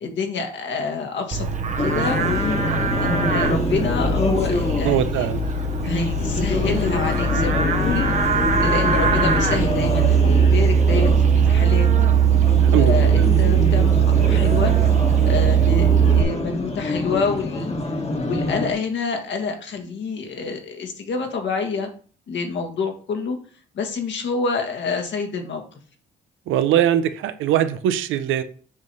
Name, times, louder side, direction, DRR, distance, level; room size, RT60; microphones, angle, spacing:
voice 1, 0.0-2.6 3.0-5.3 5.8-12.0 12.7-14.7 15.2-17.7 18.2-21.9 22.3-23.4 23.7-25.8, left 5 dB, 65° left, 4 dB, 1.7 m, -27 dB
Livestock farm animals working animals, 1.3-16.2, right 6 dB, 40° right, 0.9 m, -19 dB
sound 1, 1.8-18.7, left 2 dB, 30° left, 1.4 m, -26 dB
voice 2, 4.8-5.4 12.7-13.3 26.5-28.4, right 11 dB, 90° right, 11 dB, 0.7 m, -21 dB
7.3 x 3.2 x 5.5 m, 0.42 s
cardioid pair, 90°, 20 cm